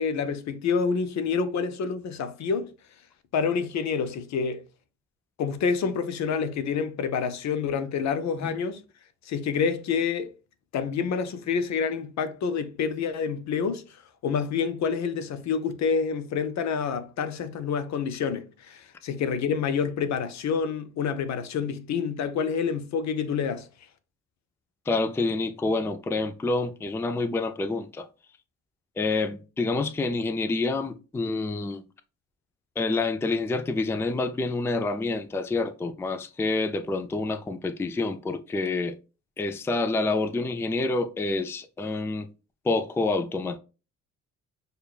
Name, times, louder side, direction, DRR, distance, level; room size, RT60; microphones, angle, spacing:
voice 1, 0.0-2.7 3.3-4.6 5.4-8.8 9.3-10.3 10.7-13.8 14.2-23.7, left 6 dB, 65° left, 0.7 m, -28 dB
voice 2, 24.9-28.1 29.0-31.8 32.8-39.0 39.4-42.3 42.6-43.6, left 3 dB, 10° left, 0.3 m, -27 dB
6.6 x 2.3 x 2.3 m
cardioid pair, 90°, 30 cm